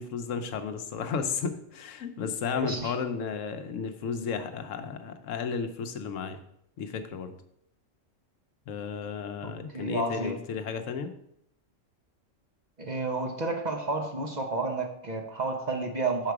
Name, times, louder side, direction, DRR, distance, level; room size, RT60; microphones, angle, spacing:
voice 1, 0.0-6.4 6.8-7.3 8.7-11.1, left 6 dB, 75° left, 8 dB, 1.0 m, -33 dB
voice 2, 2.5-2.9 9.4-10.4 12.8-16.3, right 3 dB, 40° right, 3 dB, 0.8 m, -31 dB
6.5 x 4.8 x 4.7 m, 0.73 s
omnidirectional pair, 1.4 m